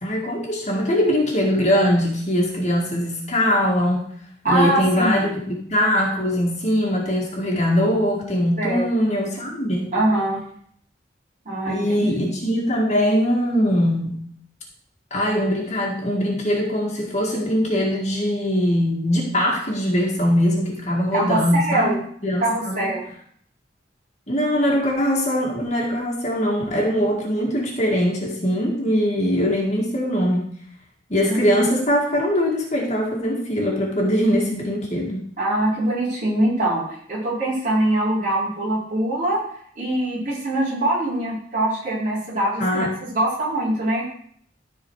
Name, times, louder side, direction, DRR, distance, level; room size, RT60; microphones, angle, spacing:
voice 1, 0.0-4.0 4.5-9.9 11.7-14.2 15.1-21.9 22.2-22.9 24.3-30.5 31.1-35.2 42.6-42.9, equal, 40° left, -2 dB, 1.9 m, -21 dB
voice 2, 4.4-5.3 8.6-8.9 9.9-10.4 11.4-12.3 21.1-22.0 22.4-23.0 35.4-39.4 39.8-44.0, right 1 dB, 45° right, -7 dB, 4.3 m, -23 dB
13.5 x 4.5 x 4.8 m, 0.63 s
head